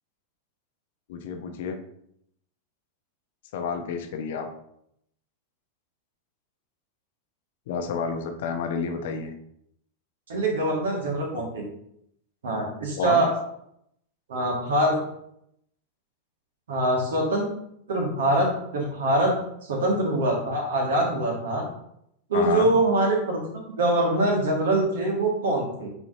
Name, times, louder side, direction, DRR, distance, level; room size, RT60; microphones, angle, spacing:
voice 1, 1.1-1.8 3.5-4.5 7.7-9.3 13.0-13.3 22.3-22.7, left 6 dB, 55° left, 5 dB, 0.8 m, -30 dB
voice 2, 10.3-11.6 12.4-13.3 14.3-15.0 16.7-17.4 17.9-19.4 19.7-21.6 22.3-23.4 23.8-25.9, right 1 dB, 65° right, 0 dB, 1.9 m, -24 dB
8.1 x 4.2 x 2.8 m, 0.73 s
figure-of-eight pair, 90°, 0 cm